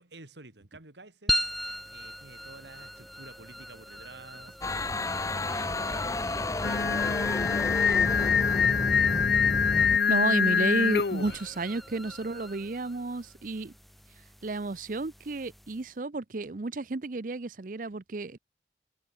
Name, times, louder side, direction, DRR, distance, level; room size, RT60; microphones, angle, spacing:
voice 1, 0.0-4.6 5.1-6.3 6.5-8.9, right 2 dB, 85° right, 3.1 m, -51 dB
sound 1, 1.3-16.0, equal, ahead, 2.9 m, -40 dB
sound 2, 4.6-10.0, left 2 dB, 20° left, 0.8 m, -31 dB
Singing, 6.6-11.4, left 6 dB, 65° left, 0.6 m, -25 dB
voice 2, 10.1-13.7 14.4-18.4, right 3 dB, 50° right, 0.7 m, -32 dB
head